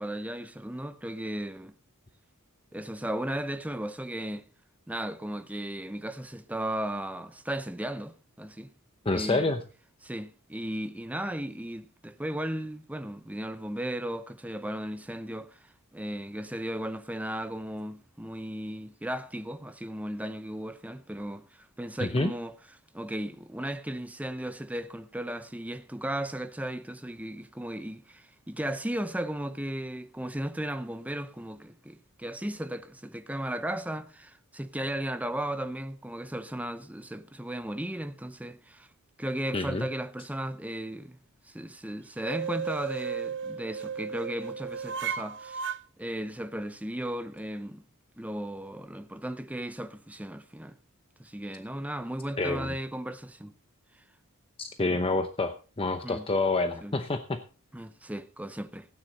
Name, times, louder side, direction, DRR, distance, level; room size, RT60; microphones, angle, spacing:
voice 1, 0.0-1.7 2.7-4.4 4.9-8.7 9.1-9.5 10.0-15.6 15.9-21.5 21.8-22.5 22.9-38.9 39.2-41.2 41.5-45.6 46.0-47.8 48.2-50.8 51.2-53.5 54.9-55.0 56.0-56.3 56.8-57.0 57.7-58.9, right 1 dB, 5° right, 0.6 m, -35 dB
voice 2, 9.0-9.6 22.0-22.3 39.5-39.9 52.4-52.8 54.6-57.4, left 2 dB, 25° left, 0.8 m, -28 dB
sound 1, 42.2-45.8, right 6 dB, 55° right, 0.7 m, -34 dB
15.5 x 9.6 x 3.9 m
head